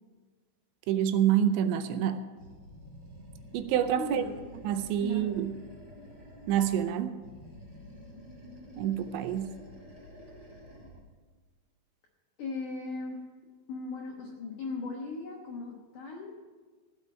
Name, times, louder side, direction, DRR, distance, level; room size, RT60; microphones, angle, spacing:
voice 1, 0.9-2.3 3.5-4.3 4.6-5.6 6.5-7.2 8.8-9.5, right 10 dB, 80° right, 9 dB, 2.8 m, -27 dB
Animal, 2.4-6.9 7.2-11.1, equal, 30° right, 1.3 m, -49 dB
voice 2, 4.0-4.4 5.0-5.2 12.4-13.3 13.7-16.4, left 3 dB, 75° left, 0 dB, 1.9 m, -38 dB
16.0 x 6.1 x 9.1 m, 1.4 s
omnidirectional pair, 5.4 m